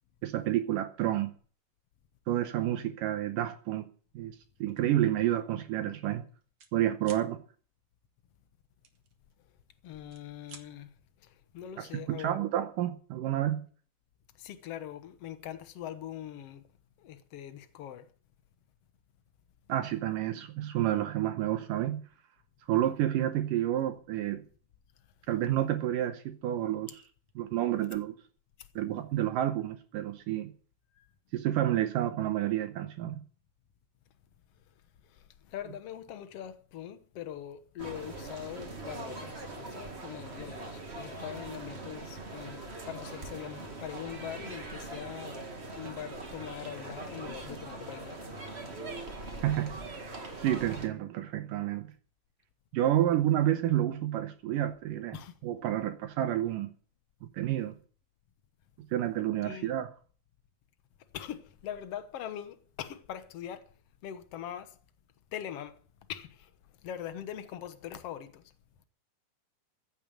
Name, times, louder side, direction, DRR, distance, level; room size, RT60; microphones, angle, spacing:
voice 1, 0.2-1.3 2.3-3.9 4.1-6.2 6.7-7.4 11.8-13.7 19.7-22.0 22.7-24.4 25.3-27.0 27.4-28.1 28.8-30.5 31.3-33.2 49.4-51.9 52.7-55.2 55.4-56.7 57.2-57.8 58.8-59.9, right 12 dB, 75° right, 2.3 m, -30 dB
sound 1, 4.7-4.9 5.4-5.6 5.8-6.7 7.0-7.3 8.8-9.6 10.0-10.7, right 6 dB, 55° right, 2.3 m, -52 dB
voice 2, 9.8-10.9 11.2-12.3 14.4-16.6 17.0-18.1 31.0-31.1 35.0-48.9 55.1-55.4 59.4-59.7 61.1-63.7 64.0-64.8 65.3-65.8 66.1-66.5 66.8-68.4, left 10 dB, 70° left, 1.4 m, -42 dB
sound 2, 37.8-50.9, right 2 dB, 25° right, 1.4 m, -42 dB
15.0 x 7.2 x 9.0 m
omnidirectional pair, 4.2 m